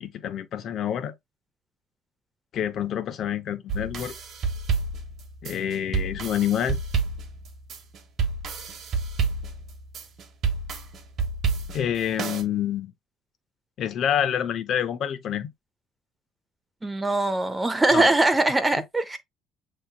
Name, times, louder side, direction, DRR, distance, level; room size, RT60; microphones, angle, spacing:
voice 1, 0.0-1.1 2.5-4.1 5.4-6.8 11.7-12.9 13.8-15.5 17.9-18.1, left 9 dB, 50° left, 0.7 m, -27 dB
sound 1, 3.7-12.4, right 5 dB, 45° right, 1.1 m, -29 dB
voice 2, 16.8-19.2, right 2 dB, 10° right, 0.7 m, -22 dB
6.9 x 3.1 x 2.2 m
cardioid pair, 140°, 0 cm